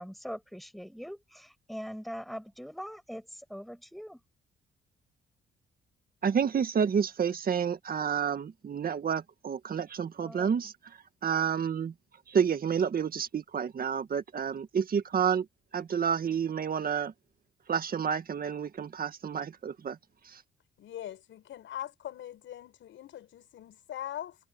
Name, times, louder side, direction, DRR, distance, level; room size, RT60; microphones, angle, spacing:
voice 1, 0.0-4.2 10.2-10.7, equal, ahead, 7.8 m, -42 dB
voice 2, 6.2-10.7 11.2-11.9 12.3-15.4 15.7-17.1 17.7-20.0, right 7 dB, 45° right, 1.9 m, -29 dB
voice 3, 20.8-24.4, left 11 dB, 75° left, 6.6 m, -41 dB
cardioid pair, 90°, 20 cm